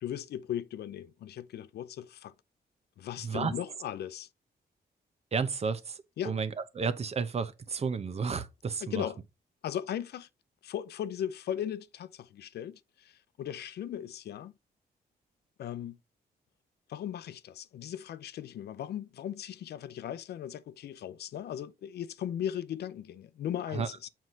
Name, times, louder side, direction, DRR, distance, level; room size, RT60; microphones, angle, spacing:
voice 1, 0.0-2.3 3.0-4.3 6.2-6.3 8.8-9.2 9.6-10.3 10.6-14.5 15.6-16.0 16.9-24.1, left 10 dB, 80° left, 0.5 m, -37 dB
voice 2, 3.2-3.5 5.3-9.0 23.7-23.9, right 5 dB, 40° right, 0.8 m, -32 dB
7.5 x 4.6 x 3.9 m
wide cardioid pair, 130°, 17 cm